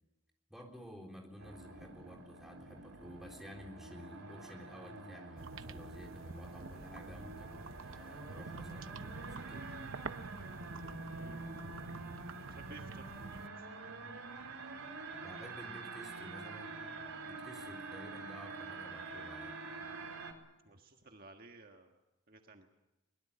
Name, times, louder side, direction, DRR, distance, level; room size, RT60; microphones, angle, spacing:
voice 1, 0.5-9.7 15.2-17.0 17.2-19.6, equal, ahead, 1 dB, 3.8 m, -52 dB
sound 1, 1.4-20.3, right 3 dB, 85° right, 4.6 m, -47 dB
Woodpecker Pecking, 5.4-13.5, right 3 dB, 65° right, 0.9 m, -48 dB
voice 2, 11.1-13.6 20.6-22.0 22.3-22.7, right 2 dB, 40° right, 4 dB, 1.6 m, -56 dB
23.0 x 21.0 x 8.7 m, 1.0 s
head